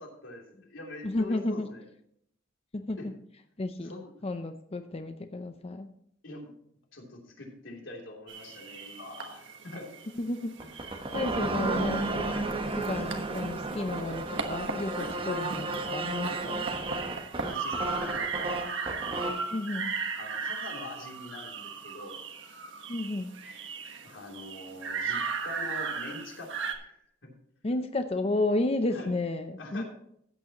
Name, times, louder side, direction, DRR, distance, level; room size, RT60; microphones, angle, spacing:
voice 1, 0.0-1.9 3.0-3.1 3.8-4.1 6.2-6.5 6.9-9.9 10.6-11.0 11.3-11.4 12.2-12.5 15.2-15.4 17.3-18.7 20.2-22.2 24.0-26.5 26.8-27.3 28.9-29.1 29.6-29.8, left 2 dB, 90° left, 0 dB, 3.0 m, -44 dB
voice 2, 1.0-1.7 2.7-3.2 3.6-5.9 10.1-10.5 11.1-12.3 12.8-16.7 19.5-19.9 22.9-23.3 27.6-29.8, left 2 dB, 30° left, 7 dB, 0.6 m, -32 dB
sound 1, 8.3-26.8, right 5 dB, 70° right, 1.3 m, -37 dB
sound 2, 10.6-19.5, right 2 dB, 30° right, 1.2 m, -33 dB
14.5 x 8.9 x 3.0 m, 0.69 s
head